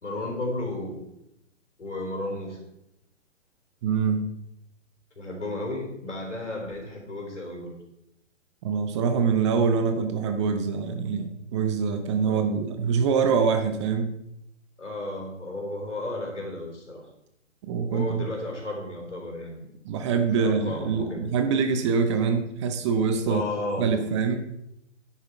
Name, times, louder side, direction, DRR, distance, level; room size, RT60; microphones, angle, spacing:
voice 1, 0.0-1.0 1.8-2.6 5.2-7.7 12.3-12.5 14.8-17.1 17.9-19.7 20.3-21.3 23.3-24.0, left 1 dB, 70° left, 1 dB, 3.6 m, -33 dB
voice 2, 3.8-4.3 8.6-14.2 17.6-18.3 19.8-23.5 23.8-24.4, right 5 dB, 25° right, 7 dB, 0.7 m, -24 dB
10.0 x 7.6 x 4.5 m, 0.83 s
figure-of-eight pair, 125°, 36 cm